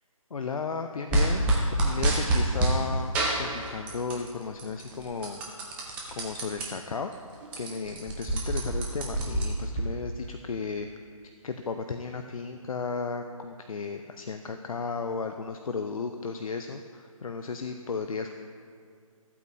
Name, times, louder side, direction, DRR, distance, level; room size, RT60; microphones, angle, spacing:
voice 1, 0.3-1.4 1.8-5.4 6.2-7.1 7.6-10.9 11.4-18.3, left 5 dB, 70° left, 6 dB, 0.5 m, -34 dB
sound 1, 1.1-2.8 3.1-4.3 4.6-6.7 7.1-7.2 7.4-9.8, right 2 dB, 5° right, 0.5 m, -27 dB
14.5 x 8.4 x 2.7 m, 2.2 s
figure-of-eight pair, 155°, 18 cm